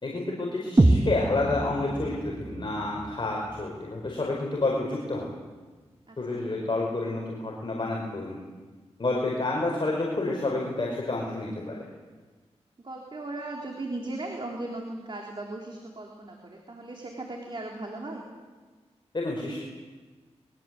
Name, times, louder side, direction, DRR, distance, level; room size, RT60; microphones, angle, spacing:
voice 1, 0.0-5.3 6.2-8.4 9.0-11.8 19.1-19.6, left 2 dB, 45° left, -2 dB, 5.3 m, -29 dB
sound 1, 0.8-4.8, right 2 dB, 25° right, 1.6 m, -27 dB
voice 2, 6.1-6.5 12.8-18.2, right 2 dB, 45° right, 0 dB, 3.6 m, -37 dB
23.0 x 22.5 x 7.9 m, 1.4 s
wide cardioid pair, 70°, 12 cm